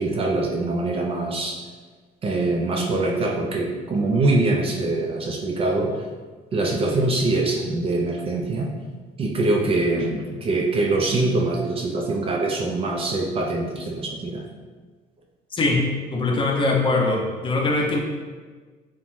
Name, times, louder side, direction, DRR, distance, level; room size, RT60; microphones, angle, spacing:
voice 1, 0.0-1.6 2.2-5.9 6.5-8.7 9.2-14.4, right 2 dB, 35° right, 0 dB, 0.3 m, -23 dB
voice 2, 15.5-15.8 16.1-18.0, left 2 dB, 30° left, 0 dB, 0.5 m, -22 dB
2.5 x 2.2 x 3.0 m, 1.4 s
cardioid pair, 110°, 17 cm